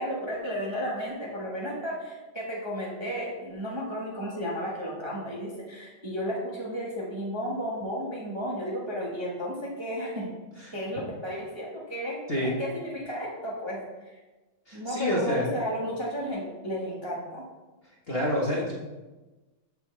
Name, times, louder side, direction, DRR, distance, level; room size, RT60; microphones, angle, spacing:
voice 1, 0.0-10.3 10.7-13.8 14.7-17.4, equal, 15° right, -4 dB, 1.3 m, -33 dB
voice 2, 14.7-15.5 18.1-18.7, left 1 dB, 30° left, -4 dB, 1.6 m, -28 dB
14.0 x 5.7 x 3.4 m, 1.2 s
omnidirectional pair, 2.2 m